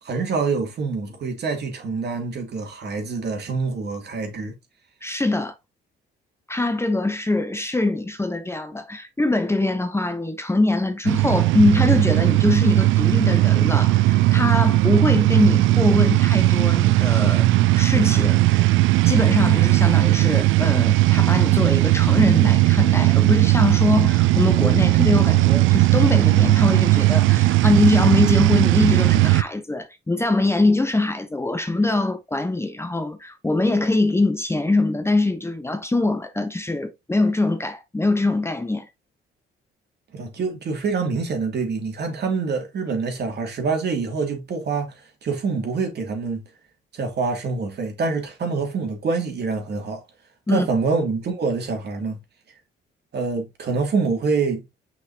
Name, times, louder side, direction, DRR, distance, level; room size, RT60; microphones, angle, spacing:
voice 1, 0.0-4.5 40.1-46.4 46.9-50.0 50.5-52.2 53.1-54.6, right 4 dB, 55° right, 2.7 m, -26 dB
voice 2, 5.0-5.5 6.5-17.5 17.8-18.7 19.1-38.9 50.5-50.7, left 2 dB, 10° left, 0.9 m, -22 dB
sound 1, 11.1-29.4, right 18 dB, 80° right, 0.4 m, -17 dB
6.1 x 5.9 x 2.9 m
cardioid pair, 90°, 20 cm